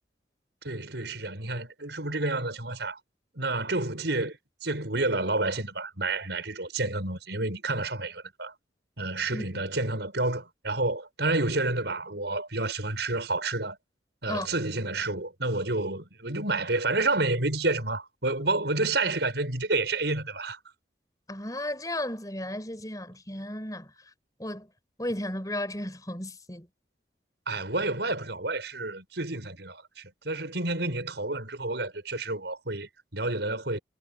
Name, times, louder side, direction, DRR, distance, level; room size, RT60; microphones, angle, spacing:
voice 1, 0.6-3.0 3.3-8.5 9.0-13.8 14.2-20.6 27.5-33.8, right 2 dB, 75° right, 5.6 m, -29 dB
voice 2, 21.3-23.9 24.4-24.7 25.0-26.7, left 1 dB, 20° left, 6.8 m, -34 dB
head